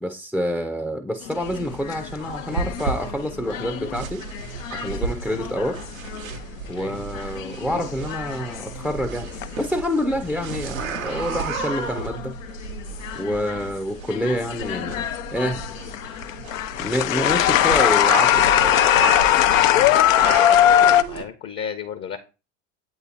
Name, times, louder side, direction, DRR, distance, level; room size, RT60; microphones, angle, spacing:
voice 1, 0.0-4.2 4.7-5.8 6.7-12.4 13.1-15.0 15.3-15.6 16.8-18.7, equal, ahead, 7 dB, 0.5 m, -27 dB
sound 1, 1.3-6.5 6.9-9.8 10.1-10.5 11.1-13.7 14.1-21.0, left 12 dB, 75° left, 0.5 m, -21 dB
sound 2, 1.4-21.2, right 5 dB, 90° right, 0.8 m, -33 dB
voice 2, 20.2-22.2, left 7 dB, 35° left, 8 dB, 0.7 m, -35 dB
8.0 x 2.9 x 4.0 m, 0.31 s
hypercardioid pair, 70°, 40 cm